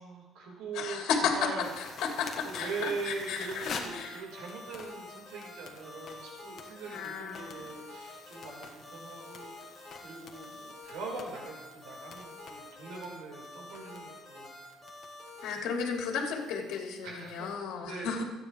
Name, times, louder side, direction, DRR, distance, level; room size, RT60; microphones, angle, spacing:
voice 1, 0.0-1.7 2.4-14.5 17.0-17.5 17.9-18.1, right 4 dB, 80° right, -1 dB, 5.2 m, -41 dB
voice 2, 0.7-4.2 6.9-7.7 15.4-18.2, left 6 dB, 70° left, 0 dB, 3.0 m, -33 dB
sound 1, 1.6-17.5, left 5 dB, 40° left, 1.6 m, -49 dB
sound 2, 3.6-15.6, left 2 dB, 5° right, 5.2 m, -48 dB
26.5 x 9.8 x 3.6 m, 1.1 s
cardioid pair, 165°, 0 cm